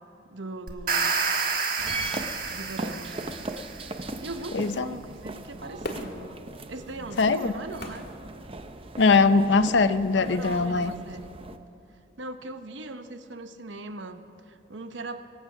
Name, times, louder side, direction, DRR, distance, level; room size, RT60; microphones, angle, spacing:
voice 1, 0.3-1.1 2.4-3.2 4.2-6.4 6.7-8.1 10.1-11.3 12.2-15.3, right 2 dB, 80° right, 9 dB, 0.9 m, -40 dB
sound 1, 0.7-3.9, right 4 dB, 50° right, 1.5 m, -29 dB
sound 2, 1.8-11.6, right 2 dB, 30° right, 0.6 m, -39 dB
voice 2, 4.5-4.8 7.2-7.5 9.0-10.9, left 4 dB, 70° left, 12 dB, 0.6 m, -21 dB
Fireworks, 5.8-9.2 9.7-9.8, left 1 dB, 55° left, 1.7 m, -41 dB
24.0 x 8.1 x 6.1 m, 2.7 s
head